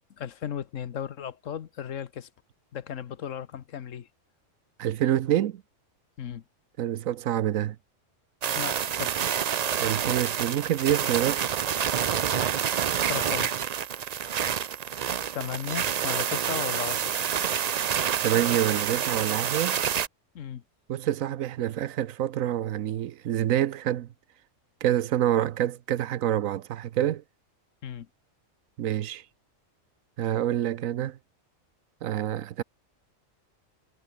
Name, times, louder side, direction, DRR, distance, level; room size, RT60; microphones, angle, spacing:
voice 1, 0.2-2.3 2.7-4.1 6.2-6.4 8.5-9.5 13.1-13.5 15.3-17.2 20.3-20.6 27.8-28.1, left 9 dB, 70° left, 1.3 m, -35 dB
voice 2, 4.8-5.6 6.8-7.8 9.7-11.4 18.2-19.8 20.9-24.1 24.8-27.2 28.8-29.2 30.2-31.2 32.0-32.6, right 11 dB, 85° right, 1.2 m, -27 dB
sound 1, 8.4-20.1, right 8 dB, 65° right, 0.4 m, -28 dB
omnidirectional pair, 1.4 m